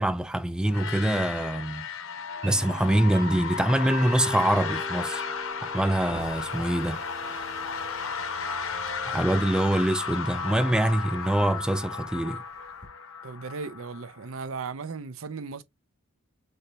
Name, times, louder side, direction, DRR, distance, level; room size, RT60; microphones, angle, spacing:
voice 1, 0.0-1.9 2.4-5.2 5.6-7.0 9.1-12.4, right 1 dB, 5° right, 0.3 m, -25 dB
sound 1, 0.7-14.4, left 6 dB, 70° left, 0.9 m, -34 dB
sound 2, 2.4-10.1, right 2 dB, 50° right, 2.5 m, -42 dB
sound 3, 3.7-10.8 11.1-12.9, right 1 dB, 35° right, 1.9 m, -46 dB
voice 2, 13.2-15.6, right 4 dB, 75° right, 0.6 m, -36 dB
6.3 x 3.0 x 2.7 m
head